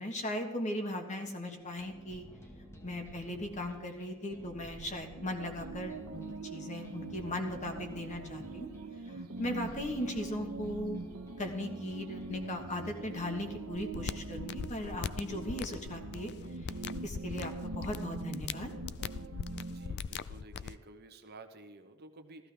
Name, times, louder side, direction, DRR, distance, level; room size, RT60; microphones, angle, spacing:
voice 1, 0.0-2.2 2.8-8.7 9.1-11.1 11.4-16.3 16.6-16.7 17.0-18.7, left 1 dB, 35° left, 4 dB, 1.4 m, -38 dB
sound 1, 1.4-13.8, equal, 15° left, 1.3 m, -53 dB
sound 2, 5.2-19.9, right 3 dB, 90° right, 0.9 m, -43 dB
sound 3, 13.7-20.7, left 6 dB, 50° left, 0.4 m, -41 dB
voice 2, 19.6-22.5, right 2 dB, 50° right, 7 dB, 0.9 m, -52 dB
14.5 x 14.0 x 3.5 m, 1.3 s
head